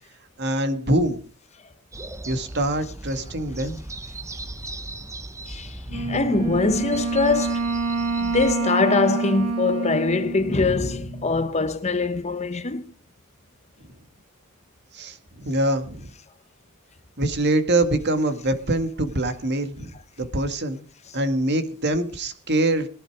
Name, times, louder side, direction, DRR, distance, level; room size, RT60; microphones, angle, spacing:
voice 1, 0.4-1.2 2.3-3.8 14.9-16.1 17.2-19.9 20.2-20.8 21.1-22.9, right 1 dB, 50° right, 2.0 m, -24 dB
sound 1, 1.9-8.5, right 2 dB, 15° right, 0.8 m, -38 dB
voice 2, 5.5-7.6 8.2-12.8, left 3 dB, 30° left, 1.0 m, -23 dB
Wind instrument woodwind instrument, 5.9-11.4, right 3 dB, 85° right, 3.3 m, -27 dB
19.5 x 11.5 x 4.8 m
head